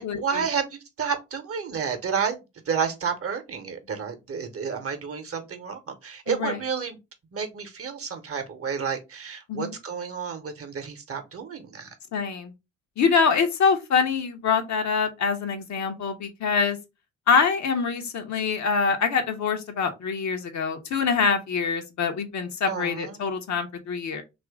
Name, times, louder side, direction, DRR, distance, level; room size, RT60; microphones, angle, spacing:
voice 1, 0.0-2.4 2.7-7.0 7.3-11.9 22.7-23.2, right 6 dB, 35° right, 0.9 m, -30 dB
voice 2, 12.1-12.5 13.0-16.8 17.3-24.2, left 5 dB, 45° left, 0.8 m, -25 dB
2.9 x 2.5 x 3.5 m
figure-of-eight pair, 40°, 38 cm